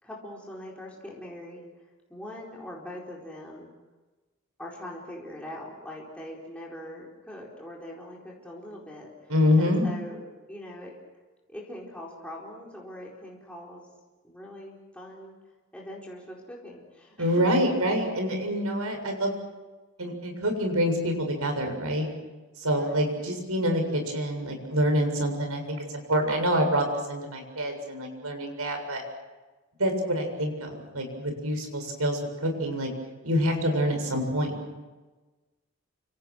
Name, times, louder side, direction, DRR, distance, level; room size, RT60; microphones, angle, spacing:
voice 1, 0.0-1.7 2.1-3.7 4.6-10.9 11.5-13.9 14.2-15.4 15.7-17.5 17.8-18.1 22.7-23.1, left 1 dB, 5° left, -4 dB, 4.4 m, -42 dB
voice 2, 9.3-9.8 17.2-19.3 20.0-22.1 22.6-29.0 29.8-32.9 33.2-34.5, equal, 85° right, 4 dB, 7.3 m, -26 dB
29.5 x 26.5 x 6.4 m, 1.2 s
head